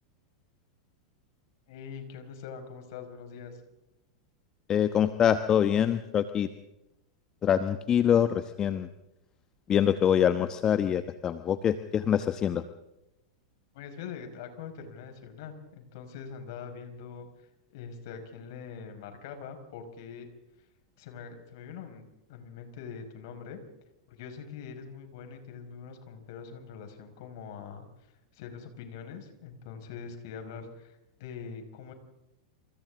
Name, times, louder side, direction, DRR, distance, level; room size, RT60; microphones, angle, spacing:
voice 1, 1.7-3.6 13.7-17.3 17.7-20.3 21.0-22.0 22.3-23.6 24.1-27.9 28.3-31.9, left 6 dB, 55° left, 6 dB, 5.3 m, -43 dB
voice 2, 4.7-6.5 7.4-8.9 9.7-12.6, left 9 dB, 30° left, 11 dB, 1.1 m, -25 dB
28.5 x 28.5 x 3.8 m, 0.92 s
figure-of-eight pair, 95°, 2 cm